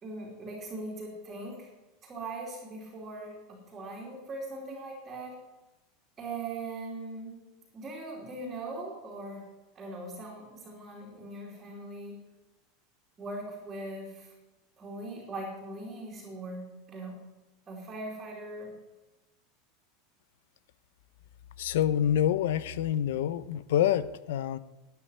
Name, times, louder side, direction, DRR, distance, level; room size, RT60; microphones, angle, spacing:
voice 1, 0.0-1.7 2.0-5.4 6.2-7.4 7.7-9.4 9.7-12.2 13.2-14.3 14.8-17.2 17.7-18.7, right 2 dB, 15° right, -5 dB, 3.1 m, -40 dB
voice 2, 21.6-24.6, left 10 dB, 80° left, 16 dB, 0.8 m, -27 dB
12.5 x 9.6 x 9.6 m, 1.1 s
supercardioid pair, 175°, 0 cm